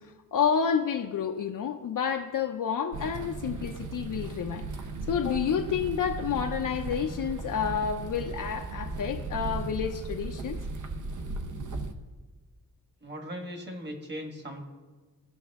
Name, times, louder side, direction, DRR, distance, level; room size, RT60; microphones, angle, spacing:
voice 1, 0.0-4.7 5.1-10.6 11.7-11.8, left 7 dB, 60° left, 4 dB, 0.6 m, -29 dB
sound 1, 2.9-11.9, right 3 dB, 55° right, 0.8 m, -36 dB
voice 2, 13.0-14.6, equal, 30° right, 3 dB, 1.6 m, -38 dB
18.0 x 6.1 x 3.5 m, 1.3 s
wide cardioid pair, 165°, 36 cm